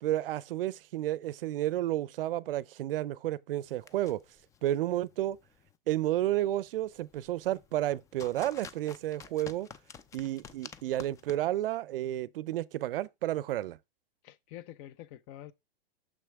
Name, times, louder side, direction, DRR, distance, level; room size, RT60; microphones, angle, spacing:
voice 1, 0.0-4.2 4.6-5.4 5.9-9.7 10.1-13.8, right 14 dB, 70° right, 0.5 m, -31 dB
sound 1, 3.6-11.3, left 6 dB, 10° left, 0.3 m, -51 dB
voice 2, 14.2-15.5, left 12 dB, 35° left, 0.7 m, -47 dB
6.4 x 6.1 x 3.4 m
hypercardioid pair, 120°, 29 cm